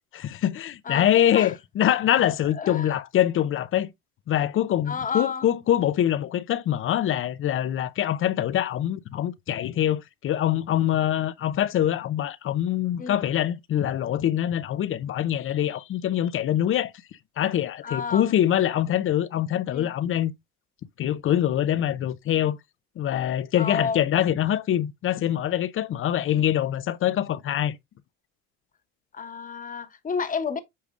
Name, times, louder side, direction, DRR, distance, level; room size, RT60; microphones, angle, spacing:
voice 1, 0.1-3.9 4.3-16.9 17.4-20.3 21.0-22.6 23.0-27.8, left 11 dB, 40° left, 0.6 m, -24 dB
voice 2, 2.6-2.9 4.9-5.5 13.0-13.2 17.8-18.3 19.7-19.9 23.6-24.0 29.1-30.6, left 5 dB, 25° left, 1.2 m, -30 dB
8.5 x 4.8 x 2.4 m
supercardioid pair, 95°, 32 cm